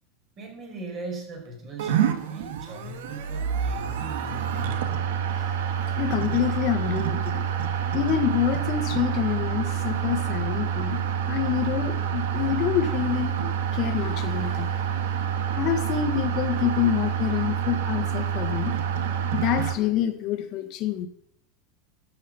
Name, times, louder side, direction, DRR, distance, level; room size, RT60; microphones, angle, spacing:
voice 1, 0.4-4.9, right 2 dB, 30° right, 1 dB, 4.9 m, -39 dB
sound 1, 1.8-19.8, right 8 dB, 80° right, 1.7 m, -27 dB
voice 2, 6.0-7.4 7.9-11.0 11.3-14.7 15.6-18.7 19.3-21.1, left 10 dB, 40° left, 7 dB, 1.5 m, -27 dB
12.5 x 7.7 x 7.0 m, 0.73 s
supercardioid pair, 150°, 0 cm